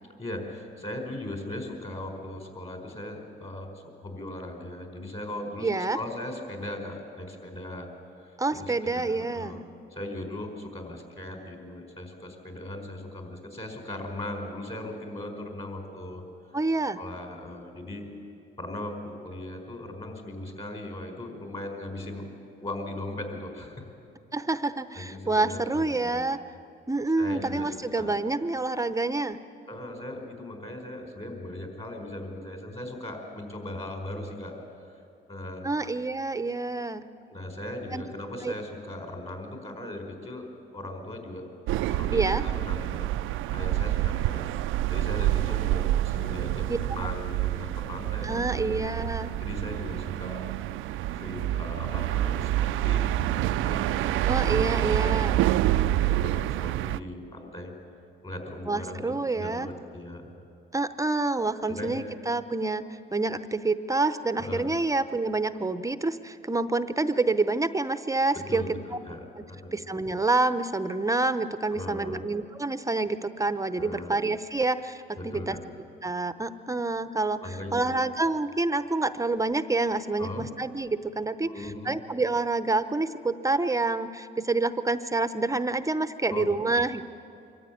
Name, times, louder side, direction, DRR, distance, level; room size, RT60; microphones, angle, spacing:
voice 1, 0.2-7.9 8.2-9.6 9.9-16.2 17.0-18.1 18.6-22.3 22.6-23.9 24.9-26.3 27.2-28.2 29.7-34.5 34.8-34.9 35.3-35.7 37.3-41.5 41.9-43.1 43.5-48.8 49.4-50.5 51.1-54.2 54.5-57.7 58.2-60.3 61.7-62.1 64.4-64.7 68.3-69.8 71.7-72.2 73.8-74.1 75.1-75.6 77.4-77.9 80.2-80.5 81.5-82.0 86.3-86.6, left 1 dB, 30° left, 3 dB, 4.8 m, -38 dB
voice 2, 5.6-6.0 8.4-9.6 16.5-17.0 24.3-26.4 26.9-29.4 35.6-37.1 37.9-38.0 38.4-38.5 42.1-42.4 46.7-46.8 48.2-49.3 54.3-55.4 58.7-59.7 60.7-68.7 69.4-69.5 69.7-75.6 76.0-87.0, right 3 dB, 15° right, 11 dB, 0.7 m, -27 dB
sound 1, 41.7-57.0, right 14 dB, 85° right, 0.4 m, -27 dB
24.5 x 14.0 x 9.4 m, 2.6 s
cardioid pair, 90°, 20 cm